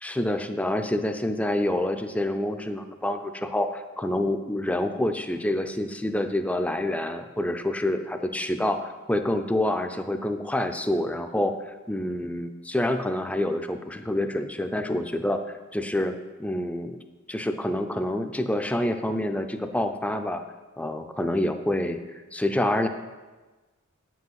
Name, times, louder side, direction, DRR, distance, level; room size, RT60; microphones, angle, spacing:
voice 1, 0.0-15.4 15.7-17.0 17.3-20.4 20.8-22.9, left 1 dB, 5° left, 7 dB, 0.5 m, -27 dB
8.4 x 6.2 x 7.4 m, 1.3 s
head